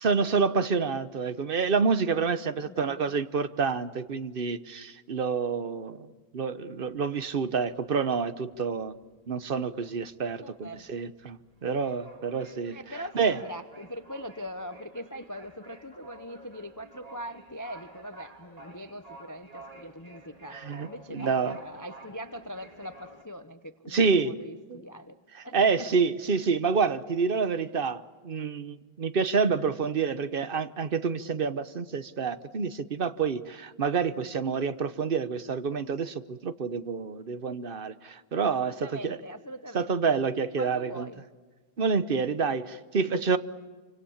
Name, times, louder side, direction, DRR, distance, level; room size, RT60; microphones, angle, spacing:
voice 1, 0.0-6.1 6.3-9.0 9.3-12.8 13.1-13.4 20.5-21.6 23.9-24.3 24.7-24.8 25.3-39.2 39.7-41.1 41.8-43.4, right 5 dB, 40° right, 13 dB, 0.9 m, -28 dB
voice 2, 2.6-3.2 10.4-10.9 12.7-25.9 38.6-40.2 40.6-41.2, equal, 20° left, 10 dB, 0.5 m, -42 dB
sound 1, 6.9-8.2 8.5-8.7 9.0-23.2, right 1 dB, 20° right, 2.8 m, -50 dB
27.5 x 25.5 x 7.2 m, 1.3 s
omnidirectional pair, 1.9 m